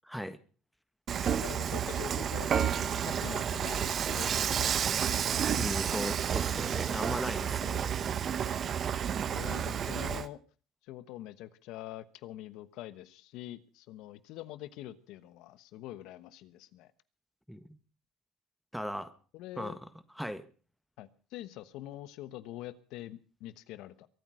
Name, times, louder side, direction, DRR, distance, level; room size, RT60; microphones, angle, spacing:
Dishes pots and pans / Frying (food), 1.1-10.3, right 8 dB, 45° right, 1.0 m, -31 dB
voice 1, 1.3-4.8 7.7-7.8 9.2-10.4 10.8-16.9 19.3-19.8 21.0-24.1, left 14 dB, 75° left, 15 dB, 1.2 m, -45 dB
voice 2, 5.6-8.0 17.5-17.6 18.7-19.1 19.6-19.8 20.2-20.4, equal, ahead, 12 dB, 1.6 m, -37 dB
23.0 x 9.0 x 6.3 m, 0.39 s
supercardioid pair, 90°, 0 cm